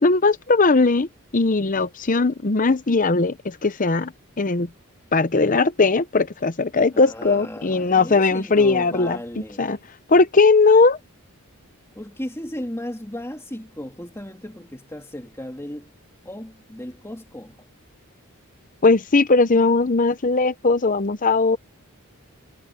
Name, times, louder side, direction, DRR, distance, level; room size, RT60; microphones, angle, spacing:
voice 1, 0.0-4.7 5.1-9.2 9.6-9.8 10.1-11.0 18.8-21.6, left 3 dB, 35° left, 0.8 m, -19 dB
voice 2, 6.9-9.8 11.9-15.9 16.2-17.7, left 1 dB, 10° left, 2.5 m, -35 dB
head